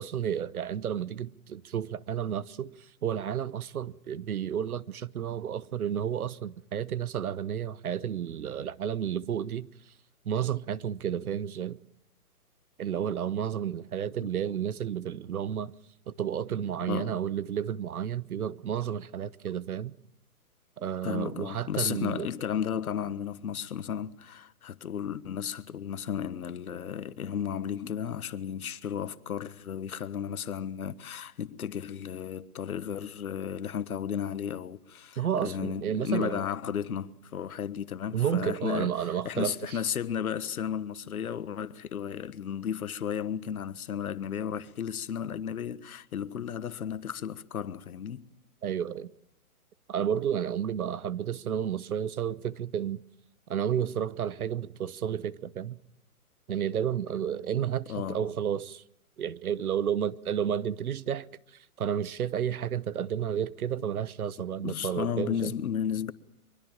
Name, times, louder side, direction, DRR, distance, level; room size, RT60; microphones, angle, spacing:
voice 1, 0.0-2.7 3.0-9.7 10.2-11.8 12.8-15.7 16.1-19.9 20.8-22.3 35.2-36.4 38.1-39.8 48.6-49.1 49.9-53.0 53.5-55.8 56.5-58.8 59.2-61.3 61.8-65.5, right 9 dB, 70° right, 1.1 m, -31 dB
voice 2, 16.9-17.2 21.0-48.2 57.9-58.3 64.6-66.1, left 8 dB, 70° left, 1.4 m, -34 dB
23.5 x 23.5 x 7.5 m
hypercardioid pair, 155°, 45 cm